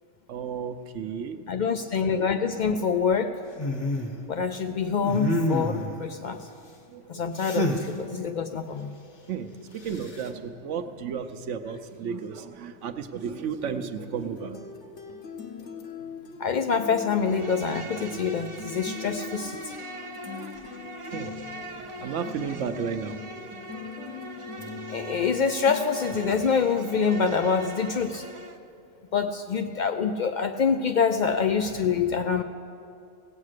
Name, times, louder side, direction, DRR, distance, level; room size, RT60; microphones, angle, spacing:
voice 1, 0.3-1.4 6.9-7.0 9.3-14.7 21.0-23.2, right 6 dB, 70° right, 9 dB, 1.0 m, -33 dB
voice 2, 1.5-3.4 4.3-6.5 7.1-8.9 16.4-19.7 24.9-28.3 29.1-32.4, left 6 dB, 85° left, 8 dB, 0.4 m, -26 dB
sound 1, 3.6-4.2 5.0-6.0 7.4-7.9 9.9-10.3, left 1 dB, 40° left, 1.0 m, -27 dB
sound 2, 13.2-26.3, left 5 dB, 65° left, 1.3 m, -41 dB
Insect, 17.1-28.6, right 2 dB, 30° right, 0.6 m, -41 dB
17.0 x 8.5 x 6.5 m, 2.5 s
omnidirectional pair, 1.3 m